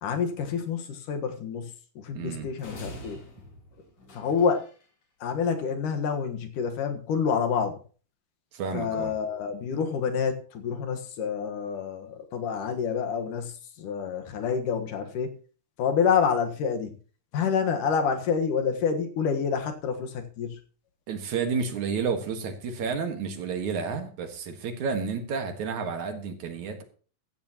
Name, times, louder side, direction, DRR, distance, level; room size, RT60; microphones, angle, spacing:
voice 1, 0.0-3.2 4.1-4.7 5.2-7.8 8.7-15.3 15.8-16.9 17.3-20.6, left 6 dB, 80° left, 3.0 m, -28 dB
voice 2, 2.1-2.5 8.5-9.2 21.1-26.8, right 5 dB, 70° right, 2.9 m, -31 dB
sound 1, 2.6-4.8, equal, 55° left, 4.5 m, -44 dB
14.5 x 14.5 x 3.0 m
omnidirectional pair, 3.6 m